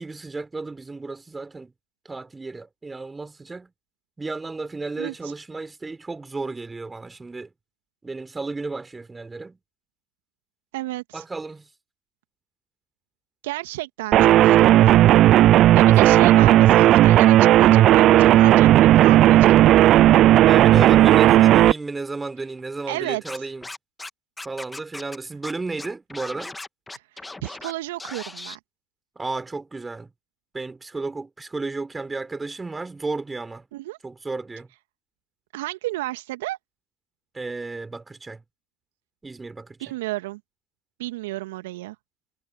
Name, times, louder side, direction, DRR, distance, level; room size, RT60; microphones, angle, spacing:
voice 1, 0.0-1.7 2.1-3.7 4.2-7.5 8.0-9.6 11.1-11.7 20.4-23.7 24.4-26.6 29.2-30.1 30.5-33.6 34.0-34.7 37.3-38.4 39.2-39.8, right 3 dB, 20° right, 3.9 m, -33 dB
voice 2, 10.7-11.2 13.4-14.8 15.5-19.9 22.9-23.5 27.4-28.6 33.7-34.0 35.5-36.6 39.8-40.4 41.0-42.0, right 18 dB, 75° right, 1.7 m, -32 dB
sound 1, 14.1-21.7, right 13 dB, 55° right, 0.3 m, -13 dB
Scratching (performance technique), 23.2-24.1 24.4-25.2 25.4-25.5 25.8-27.7 28.0-28.6, left 2 dB, 10° left, 1.6 m, -37 dB
figure-of-eight pair, 65°, 0 cm